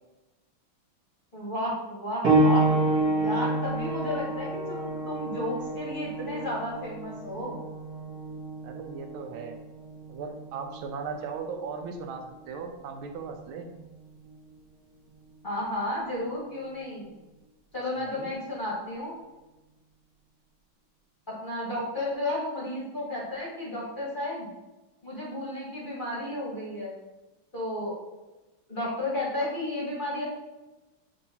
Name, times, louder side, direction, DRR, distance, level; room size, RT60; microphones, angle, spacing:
voice 1, 1.3-2.7 3.2-7.6 15.4-17.1 17.7-19.2 21.3-24.5 25.0-27.0 27.5-28.0 28.7-30.2, left 1 dB, 30° left, -7 dB, 1.1 m, -33 dB
sound 1, 2.2-12.5 13.4-13.5 14.3-14.4, right 2 dB, 55° right, 1.3 m, -29 dB
voice 2, 8.6-9.6 10.1-13.7 18.0-18.4, right 5 dB, 85° right, 4 dB, 1.4 m, -37 dB
6.9 x 2.8 x 2.7 m, 1.1 s
omnidirectional pair, 2.2 m